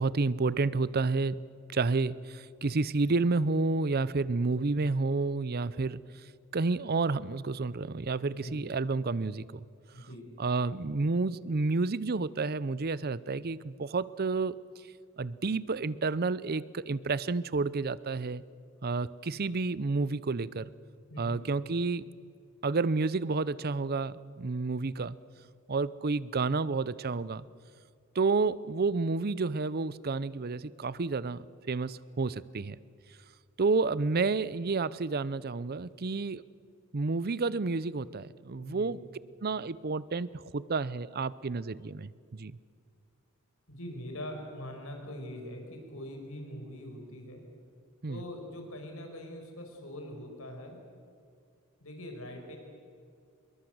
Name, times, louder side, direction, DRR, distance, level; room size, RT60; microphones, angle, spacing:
voice 1, 0.0-1.4 1.7-6.0 6.5-9.6 10.4-14.6 15.2-18.4 18.8-20.7 21.2-22.0 22.6-25.2 25.7-27.4 28.2-32.8 33.6-36.4 36.9-39.0 39.4-42.6 48.0-48.2, right 3 dB, 45° right, 19 dB, 0.6 m, -30 dB
voice 2, 8.3-8.7 9.9-10.3 21.1-21.4 38.6-38.9 43.7-47.4 48.1-50.8 51.8-52.6, left 1 dB, 70° left, 3 dB, 5.3 m, -43 dB
25.5 x 22.5 x 8.0 m, 2.2 s
head